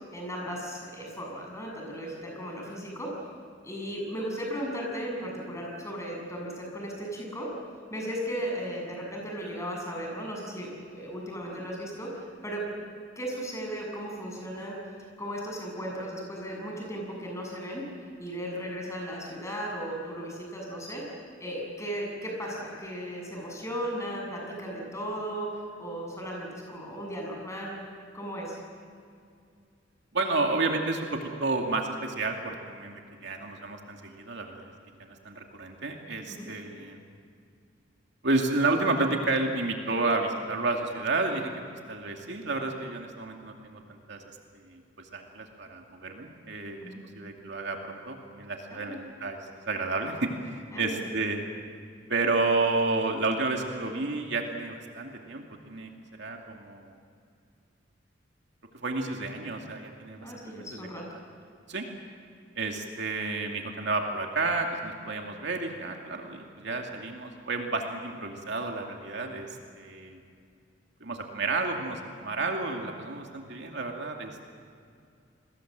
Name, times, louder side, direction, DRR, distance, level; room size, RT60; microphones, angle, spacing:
voice 1, 0.1-3.2 3.6-7.5 7.9-12.6 13.2-14.8 15.2-17.8 18.2-21.1 21.4-27.8 28.1-28.6 36.3-36.5 46.8-47.0 48.7-49.0 50.7-51.0 60.2-61.0, equal, 15° left, 0 dB, 7.3 m, -36 dB
voice 2, 30.1-34.7 35.0-37.0 38.2-41.5 41.9-44.2 44.5-49.4 49.7-51.4 52.1-55.9 56.2-57.0 58.8-60.3 60.5-61.0 61.7-61.9 62.6-70.2 71.0-74.4, right 3 dB, 65° right, 2 dB, 2.5 m, -31 dB
29.5 x 21.5 x 7.7 m, 2.4 s
head